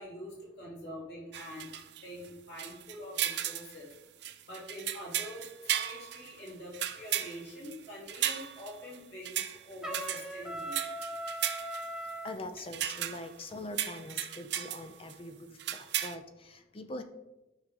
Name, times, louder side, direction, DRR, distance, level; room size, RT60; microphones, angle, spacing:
voice 1, 0.0-1.7 2.0-3.9 4.4-5.4 5.8-10.8, left 1 dB, 60° left, -6 dB, 3.2 m, -45 dB
sound 1, 1.3-2.3 2.6-3.8 4.2-9.0 9.2-9.6 9.9-12.1 12.6-13.4 13.8-14.8 15.1-15.2 15.6-16.1, right 11 dB, 60° right, 0.5 m, -35 dB
Trumpet, 9.8-12.4, right 1 dB, 5° right, 0.8 m, -39 dB
voice 2, 12.2-17.0, left 1 dB, 30° left, 7 dB, 0.5 m, -43 dB
12.0 x 5.1 x 3.7 m, 1.0 s
head